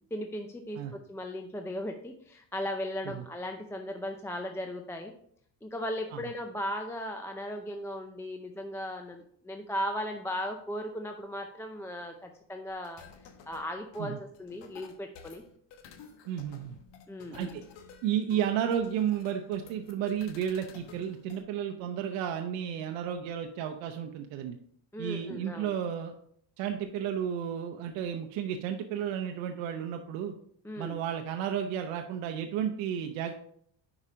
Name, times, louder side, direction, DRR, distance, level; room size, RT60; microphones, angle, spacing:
voice 1, 0.0-5.1 5.6-13.0 13.5-15.4 17.1-17.6 24.9-25.7 30.6-31.0, equal, 5° left, 4 dB, 0.5 m, -37 dB
sound 1, 12.7-21.4, left 6 dB, 70° left, 1.1 m, -52 dB
voice 2, 16.3-16.8 17.3-17.6 18.0-24.6 25.0-26.1 26.6-30.3 30.8-33.3, right 9 dB, 90° right, 5 dB, 0.7 m, -32 dB
5.5 x 4.9 x 4.9 m, 0.64 s
cardioid pair, 110°, 44 cm